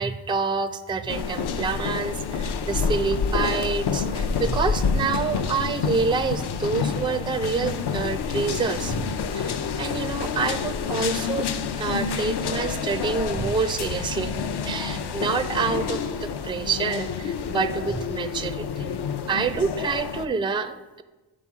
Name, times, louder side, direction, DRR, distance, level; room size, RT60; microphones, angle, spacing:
voice 1, 0.0-11.5 11.8-18.9 19.2-21.0, right 4 dB, 10° right, 11 dB, 0.3 m, -27 dB
sound 1, 1.1-20.3, left 6 dB, 55° left, 0.5 m, -28 dB
9.4 x 3.8 x 3.6 m, 1.1 s
cardioid pair, 50°, 49 cm